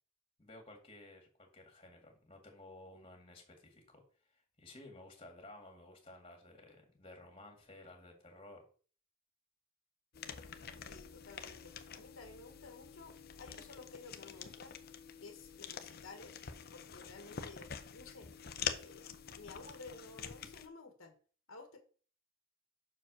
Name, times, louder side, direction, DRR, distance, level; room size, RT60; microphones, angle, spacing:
voice 1, 0.4-4.0 4.3-8.6, left 2 dB, 25° left, 2 dB, 2.1 m, -55 dB
sound 1, 10.1-20.7, left 7 dB, 50° left, 0.7 m, -46 dB
voice 2, 10.9-14.7 15.2-16.4 16.7-18.3 18.8-19.1 19.3-21.1 21.5-21.8, left 3 dB, 80° left, 4 dB, 1.4 m, -53 dB
5.9 x 4.8 x 6.2 m, 0.41 s
head